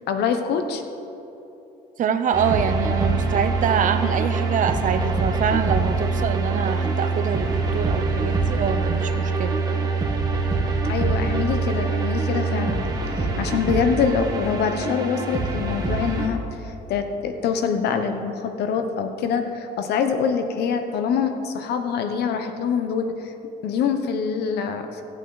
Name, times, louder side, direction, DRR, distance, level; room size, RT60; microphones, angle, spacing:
voice 1, 0.1-0.8 10.8-12.9 13.1-23.3 23.6-25.0, left 6 dB, 75° left, 7 dB, 1.1 m, -25 dB
voice 2, 2.0-9.5, right 7 dB, 50° right, 9 dB, 0.8 m, -25 dB
sound 1, 2.3-16.3, right 3 dB, 20° right, 1.6 m, -24 dB
17.0 x 8.1 x 4.1 m, 3.0 s
cardioid pair, 110°, 17 cm